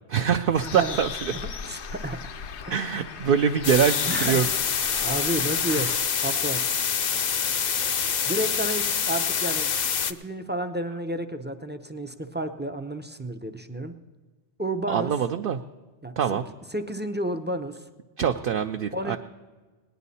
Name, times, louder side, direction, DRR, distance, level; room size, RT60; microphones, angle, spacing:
voice 1, 0.1-1.3 2.7-4.5 5.7-5.9 14.9-15.6 16.2-16.5 18.2-19.2, right 7 dB, 60° right, 6 dB, 0.6 m, -24 dB
Bird, 0.5-6.0, left 6 dB, 75° left, 1.0 m, -37 dB
voice 2, 1.6-2.3 2.7-3.3 4.1-4.5 5.0-5.9 6.2-6.6 8.3-9.7 10.1-13.9 14.6-15.1 16.0-16.4 16.7-17.8 18.9-19.2, right 1 dB, 15° right, 6 dB, 0.4 m, -31 dB
sound 1, 3.6-10.1, left 7 dB, 50° left, 0.6 m, -26 dB
18.5 x 10.5 x 4.1 m, 1.3 s
omnidirectional pair, 1.2 m